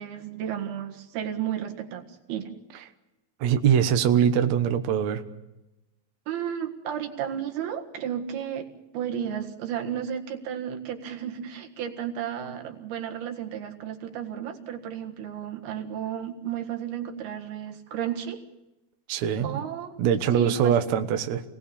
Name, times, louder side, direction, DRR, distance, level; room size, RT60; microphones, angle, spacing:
voice 1, 0.0-2.5 6.3-8.7 8.9-18.4 19.4-19.9 20.3-20.7, right 9 dB, 90° right, 4 dB, 3.7 m, -33 dB
voice 2, 3.4-5.2 19.1-19.6 20.0-21.4, right 8 dB, 60° right, 7 dB, 2.1 m, -22 dB
28.0 x 19.0 x 7.0 m, 0.97 s
omnidirectional pair, 4.3 m